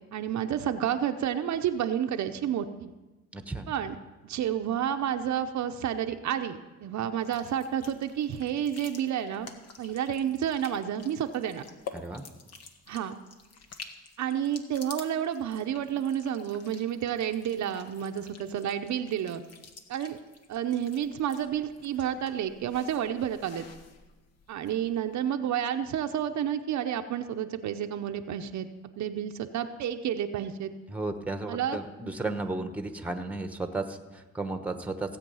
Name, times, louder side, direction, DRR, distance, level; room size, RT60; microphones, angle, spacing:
voice 1, 0.1-2.9 3.7-4.0 4.2-9.5 9.8-11.6 12.9-13.2 14.2-19.4 19.9-20.2 20.5-23.6 24.5-28.7 29.0-30.7 31.5-31.8, right 9 dB, 70° right, 7 dB, 0.8 m, -30 dB
voice 2, 3.3-3.7 11.9-12.2 30.9-35.2, right 2 dB, 5° right, 7 dB, 1.1 m, -34 dB
sound 1, 7.2-25.1, left 5 dB, 55° left, 1.4 m, -49 dB
16.5 x 8.3 x 5.6 m, 1.1 s
cardioid pair, 90°, 30 cm